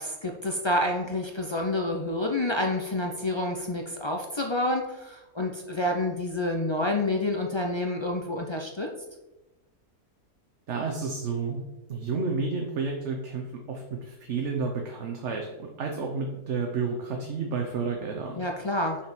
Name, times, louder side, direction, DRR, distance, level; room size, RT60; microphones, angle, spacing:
voice 1, 0.0-8.9 18.4-19.0, left 1 dB, 45° left, 1 dB, 0.3 m, -28 dB
voice 2, 10.7-11.6 11.9-18.4, right 4 dB, 55° right, 1 dB, 1.1 m, -31 dB
5.9 x 4.8 x 6.0 m, 1.0 s
omnidirectional pair, 1.6 m